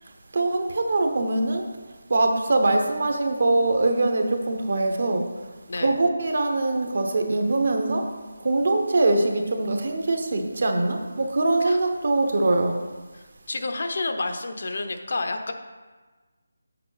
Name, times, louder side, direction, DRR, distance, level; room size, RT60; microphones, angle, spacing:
voice 1, 0.3-1.6 2.1-5.3 5.8-8.1 8.4-12.8, right 2 dB, 50° right, 5 dB, 0.9 m, -23 dB
voice 2, 13.1-15.5, left 3 dB, 55° left, 6 dB, 0.8 m, -30 dB
7.8 x 7.3 x 4.0 m, 1.3 s
figure-of-eight pair, 175°, 0 cm